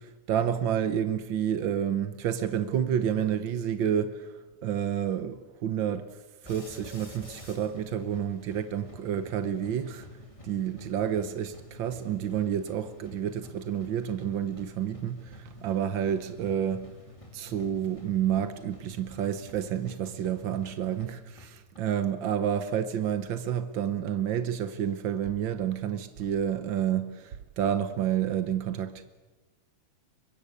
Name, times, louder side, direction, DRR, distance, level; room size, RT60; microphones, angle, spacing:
voice 1, 0.0-6.1 6.4-10.1 10.4-16.9 17.3-29.0, right 9 dB, 80° right, 1.0 m, -29 dB
sound 1, 6.4-21.8, left 2 dB, 10° left, 2.4 m, -49 dB
23.0 x 22.5 x 8.4 m
omnidirectional pair, 3.6 m